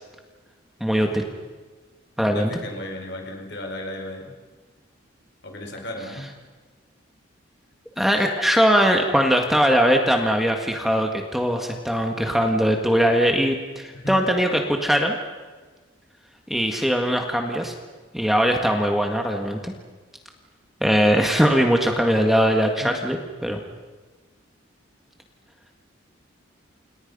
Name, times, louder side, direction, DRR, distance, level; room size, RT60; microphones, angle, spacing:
voice 1, 0.8-1.2 2.2-2.5 8.0-15.1 16.5-17.7 18.1-19.7 20.8-23.6, equal, ahead, 2 dB, 1.9 m, -21 dB
voice 2, 2.3-4.3 5.4-6.3 14.0-14.3 22.8-23.0, left 1 dB, 55° left, 3 dB, 4.6 m, -34 dB
30.0 x 28.0 x 5.5 m, 1.4 s
head